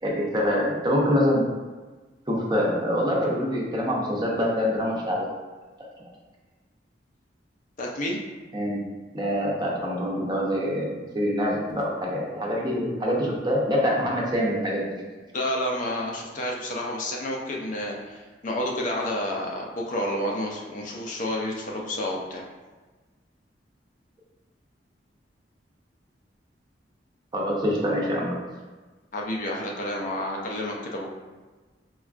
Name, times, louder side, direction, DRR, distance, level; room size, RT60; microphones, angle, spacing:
voice 1, 0.0-1.4 2.3-5.3 8.5-8.8 9.1-14.8 27.3-28.4, equal, 25° right, -3 dB, 0.6 m, -25 dB
voice 2, 7.8-8.2 15.3-22.4 29.1-31.1, left 1 dB, 45° left, -1 dB, 0.5 m, -30 dB
4.3 x 2.3 x 2.4 m, 1.3 s
head